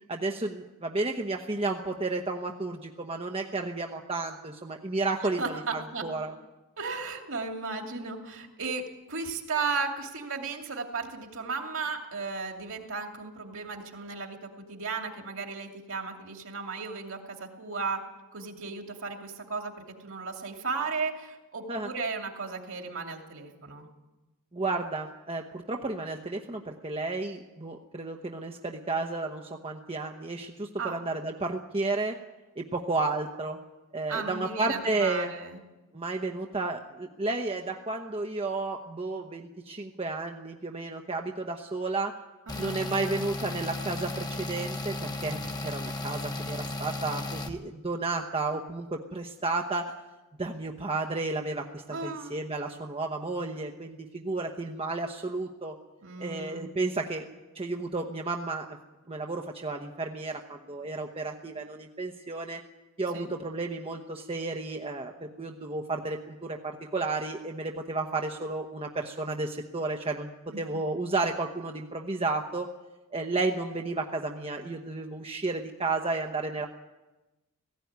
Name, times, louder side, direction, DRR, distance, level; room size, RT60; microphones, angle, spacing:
voice 1, 0.1-6.3 21.7-21.9 24.5-32.2 32.6-33.6 33.9-35.3 35.9-42.2 42.6-49.9 50.4-55.7 56.2-57.2 57.5-58.8 59.1-62.6 63.0-70.3 70.6-72.7 73.1-76.7, right 3 dB, 25° right, 3 dB, 1.0 m, -32 dB
voice 2, 5.2-6.1 6.8-18.0 18.3-19.7 20.0-23.9 30.8-31.0 34.1-35.6 42.5-42.8 51.9-52.4 56.0-56.7 63.1-63.3 70.5-70.8, right 4 dB, 60° right, 3 dB, 2.7 m, -35 dB
sound 1, 42.5-47.5, left 2 dB, 20° left, 1.3 m, -35 dB
17.0 x 16.0 x 9.5 m, 1.1 s
head